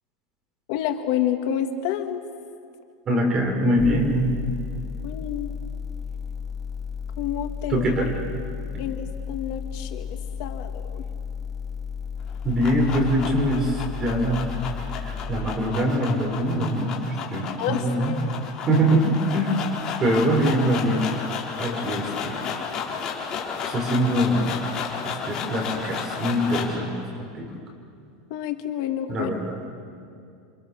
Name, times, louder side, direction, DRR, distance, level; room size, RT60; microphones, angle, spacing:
voice 1, 0.7-2.2 5.0-5.6 7.2-8.0 8.8-11.0 17.6-18.2 21.6-21.7 28.3-29.3, left 10 dB, 50° left, 6 dB, 1.6 m, -29 dB
voice 2, 3.1-4.3 7.7-8.1 12.4-14.5 15.0-18.1 18.7-19.6 20.0-21.1 21.6-22.4 23.6-24.5 25.0-26.9 27.2-27.5 29.1-29.6, equal, 20° right, 1 dB, 5.3 m, -23 dB
sound 1, 3.8-15.2, left 6 dB, 5° right, 3.5 m, -33 dB
sound 2, 12.2-26.8, left 6 dB, 25° left, 4.3 m, -33 dB
28.5 x 27.0 x 7.3 m, 2.4 s
supercardioid pair, 165°, 2 cm